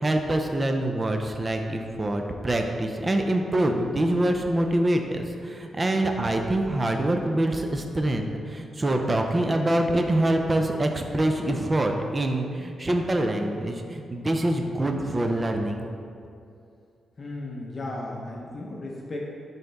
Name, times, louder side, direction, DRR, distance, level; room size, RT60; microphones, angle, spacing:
voice 1, 0.0-15.8, right 1 dB, 25° right, 3 dB, 0.5 m, -25 dB
voice 2, 17.2-19.2, left 2 dB, 35° left, -2 dB, 0.9 m, -35 dB
10.0 x 4.1 x 3.5 m, 2.5 s
wide cardioid pair, 125°, 0 cm